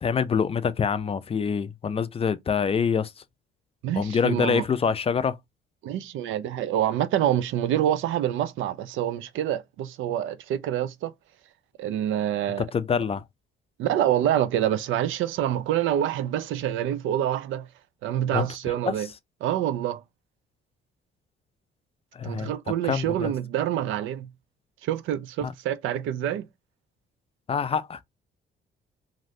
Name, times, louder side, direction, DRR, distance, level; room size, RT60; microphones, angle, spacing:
voice 1, 0.0-3.1 4.0-5.4 12.6-13.2 18.3-18.5 22.2-22.5 22.9-23.3 25.4-25.5 27.5-28.0, left 6 dB, 30° left, 0.3 m, -25 dB
voice 2, 3.8-4.6 5.8-11.1 11.8-12.7 13.8-17.7 18.0-19.1 19.4-20.0 22.2-24.3 24.8-26.5, right 11 dB, 80° right, 0.4 m, -26 dB
3.1 x 2.5 x 2.6 m
cardioid pair, 90°, 20 cm